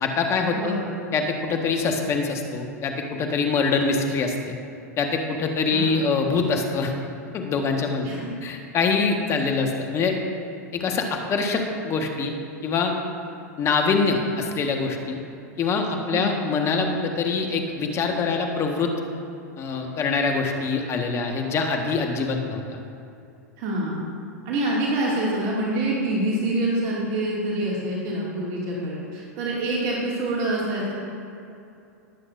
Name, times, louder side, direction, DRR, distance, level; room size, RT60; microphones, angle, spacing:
voice 1, 0.0-0.8 1.1-4.5 5.0-6.9 7.3-8.1 8.4-10.1 10.7-12.3 12.6-12.9 13.6-15.2 15.6-18.9 19.6-22.8, left 4 dB, 30° left, 3 dB, 1.5 m, -24 dB
voice 2, 0.5-0.9 5.7-6.1 8.0-8.3 16.1-16.3 23.6-24.1 24.4-30.9, right 1 dB, 50° right, -5 dB, 2.4 m, -26 dB
19.5 x 8.3 x 2.6 m, 2.6 s
hypercardioid pair, 95°, 9 cm